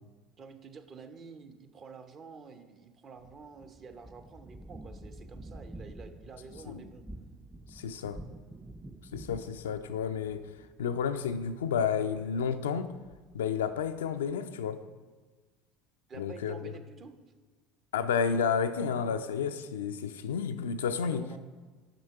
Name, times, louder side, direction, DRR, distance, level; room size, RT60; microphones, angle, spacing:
voice 1, 0.4-7.0 16.1-17.1 21.0-21.4, right 5 dB, 35° right, 8 dB, 0.7 m, -49 dB
sound 1, 3.2-14.2, right 1 dB, 5° right, 0.4 m, -49 dB
voice 2, 7.7-8.2 9.1-10.5 10.8-12.9 13.3-14.8 16.2-16.7 17.9-21.3, left 7 dB, 75° left, 9 dB, 0.3 m, -31 dB
6.7 x 6.3 x 4.6 m, 1.4 s
figure-of-eight pair, 70°, 0 cm